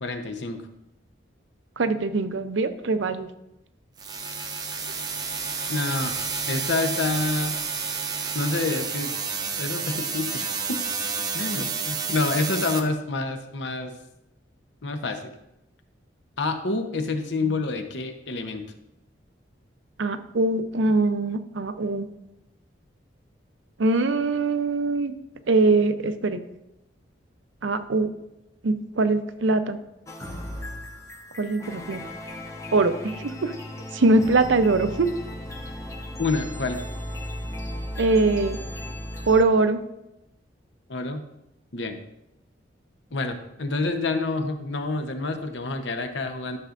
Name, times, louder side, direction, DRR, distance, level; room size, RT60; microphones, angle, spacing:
voice 1, 0.0-0.6 5.7-6.2 6.5-7.6 8.3-9.1 9.6-10.8 11.3-14.0 14.8-15.3 16.4-18.7 36.2-36.8 40.9-41.2 41.7-42.0 43.1-46.6, left 3 dB, 70° left, 6 dB, 0.9 m, -28 dB
voice 2, 1.8-3.3 20.0-22.1 23.8-25.1 25.5-26.4 27.6-28.1 28.6-29.8 31.4-32.0 32.7-33.5 33.9-35.1 38.0-38.6 39.3-39.8, right 3 dB, 80° right, 10 dB, 0.6 m, -22 dB
sound 1, 4.0-12.8, right 5 dB, 20° right, 0.6 m, -30 dB
sound 2, 30.1-39.4, left 1 dB, 15° left, 0.8 m, -36 dB
12.0 x 6.6 x 2.5 m, 0.88 s
head